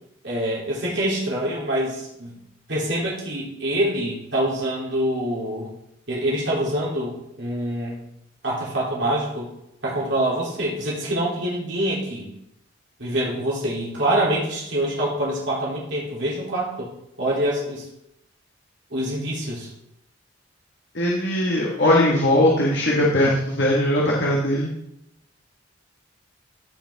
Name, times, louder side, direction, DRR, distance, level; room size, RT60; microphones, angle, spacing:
voice 1, 0.2-2.3 2.7-5.7 6.1-8.0 8.4-9.5 9.8-12.3 13.0-16.9 17.2-17.8 18.9-19.7, right 1 dB, 60° right, -5 dB, 2.9 m, -25 dB
voice 2, 20.9-24.7, left 1 dB, 55° left, -3 dB, 1.4 m, -20 dB
14.5 x 5.4 x 3.4 m, 0.81 s
head